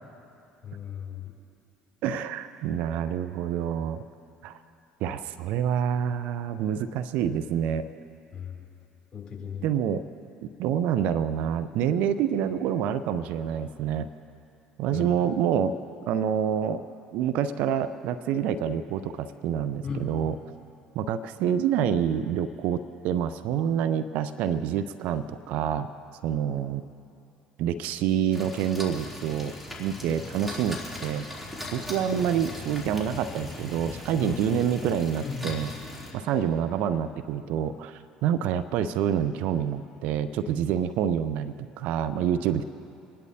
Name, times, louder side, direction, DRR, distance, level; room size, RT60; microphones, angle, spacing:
voice 1, 0.6-1.3 8.3-8.6 9.1-9.7 14.9-15.2 19.8-20.2 34.2-35.6, left 6 dB, 35° left, -1 dB, 3.0 m, -37 dB
voice 2, 2.0-4.0 4.4-4.6 5.0-7.9 9.6-10.0 10.4-14.1 14.8-15.8 16.1-16.9 17.1-20.3 20.9-25.9 26.2-26.8 27.6-31.2 31.7-35.7 36.1-42.6, right 9 dB, 65° right, 12 dB, 0.5 m, -27 dB
sound 1, 28.3-36.1, left 1 dB, 5° right, 3.1 m, -39 dB
27.0 x 11.0 x 2.8 m, 2.7 s
hypercardioid pair, 65°, 3 cm